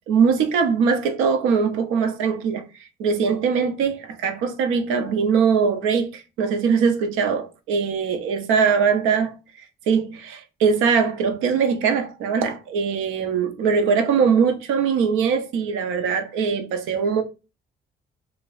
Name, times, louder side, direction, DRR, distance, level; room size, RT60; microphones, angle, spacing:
voice 1, 0.1-2.6 3.0-9.4 9.9-17.2, right 6 dB, 75° right, 0.5 m, -21 dB
2.2 x 2.0 x 3.8 m
hypercardioid pair, 55°, 21 cm